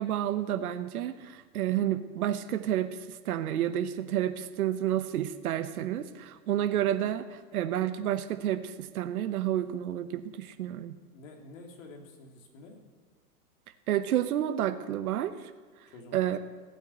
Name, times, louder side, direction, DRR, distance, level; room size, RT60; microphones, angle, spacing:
voice 1, 0.0-11.0 13.9-15.5 15.8-16.4, right 11 dB, 75° right, 9 dB, 1.0 m, -30 dB
voice 2, 11.1-12.8 15.9-16.3, left 2 dB, 60° left, 2 dB, 3.2 m, -49 dB
16.0 x 9.1 x 8.0 m, 1.5 s
hypercardioid pair, 145°, 44 cm